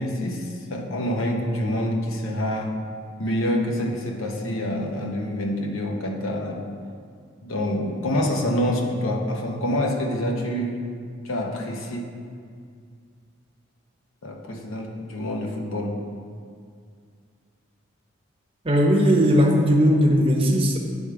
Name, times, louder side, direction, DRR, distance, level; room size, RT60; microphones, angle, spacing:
voice 1, 0.0-2.8 3.2-6.6 7.4-10.8 11.2-12.1 14.2-16.0, left 1 dB, 80° left, 1 dB, 0.9 m, -26 dB
voice 2, 18.6-20.8, equal, 25° right, 0 dB, 0.7 m, -18 dB
9.8 x 3.5 x 4.8 m, 2.2 s
head